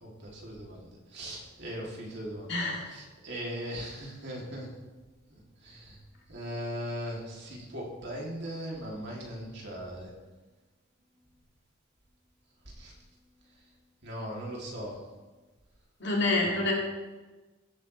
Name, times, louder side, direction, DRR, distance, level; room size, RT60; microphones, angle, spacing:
voice 1, 0.0-2.6 2.9-4.7 5.6-6.0 6.3-10.1 12.8-12.9 14.0-15.0, equal, 55° right, -3 dB, 2.8 m, -39 dB
voice 2, 2.5-2.9 16.0-16.7, left 2 dB, 55° left, -2 dB, 2.5 m, -27 dB
15.5 x 8.4 x 3.3 m, 1.2 s
head